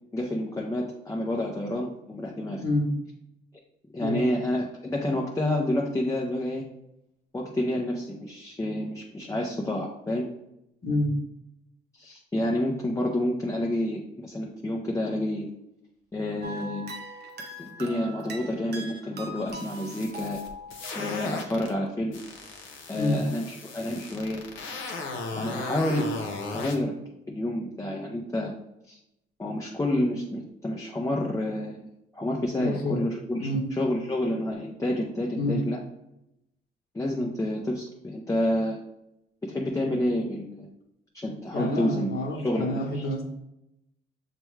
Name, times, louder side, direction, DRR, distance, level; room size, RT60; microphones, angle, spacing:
voice 1, 0.1-2.6 3.9-6.7 7.3-10.3 11.9-15.5 16.1-16.9 17.6-20.4 20.9-22.2 22.9-24.4 25.3-26.2 26.5-26.9 27.3-28.5 28.9-29.0 29.4-35.8 36.9-38.8 39.4-40.7 41.1-43.1, left 1 dB, 15° left, -1 dB, 0.6 m, -29 dB
voice 2, 10.8-11.1 23.0-23.2 32.6-33.0 33.4-33.6 35.4-35.6 41.5-43.2, left 1 dB, 50° left, 0 dB, 1.1 m, -28 dB
sound 1, 16.4-21.6, right 1 dB, 55° right, 0.8 m, -41 dB
sound 2, 19.5-21.7 22.1-26.8, left 3 dB, 80° left, 0.8 m, -37 dB
6.7 x 2.3 x 3.1 m, 0.85 s
cardioid pair, 90°, 20 cm